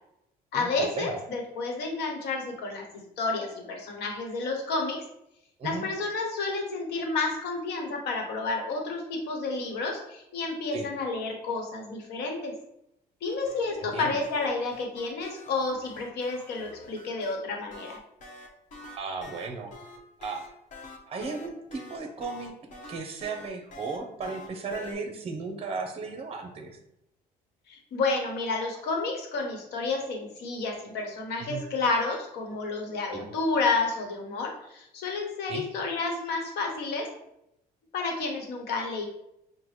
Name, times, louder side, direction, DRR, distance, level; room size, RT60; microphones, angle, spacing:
voice 1, 0.5-2.8 3.2-5.0 5.6-12.5 13.2-18.0 27.7-37.1 37.9-39.1, left 3 dB, 75° left, 2 dB, 1.0 m, -30 dB
sound 1, 13.3-17.3 17.7-24.9, left 2 dB, 50° left, 1.0 m, -46 dB
voice 2, 18.9-19.7 20.2-20.5 21.1-22.5 22.9-26.8 31.4-31.6 33.1-33.3 35.5-35.7, right 4 dB, 35° right, 4 dB, 0.6 m, -35 dB
5.6 x 2.1 x 3.2 m, 0.80 s
cardioid pair, 110°, 17 cm